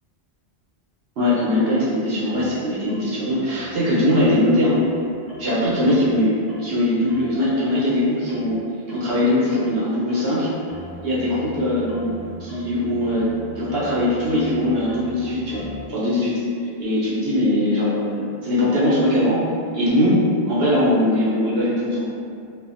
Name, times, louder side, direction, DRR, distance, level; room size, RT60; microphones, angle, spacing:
voice 1, 1.2-4.8 5.4-8.6 8.9-10.5 11.0-13.3 13.5-16.4 16.8-19.4 19.7-20.2 20.5-22.1, left 1 dB, 65° right, -8 dB, 1.0 m, -21 dB
sound 1, 1.7-2.0 2.3-3.8 4.1-4.4 4.7-6.2 6.5-6.8 7.1-8.6 8.9-9.2 9.5-15.8, equal, 60° left, 0.9 m, -40 dB
2.6 x 2.6 x 2.4 m, 2.4 s
omnidirectional pair, 1.1 m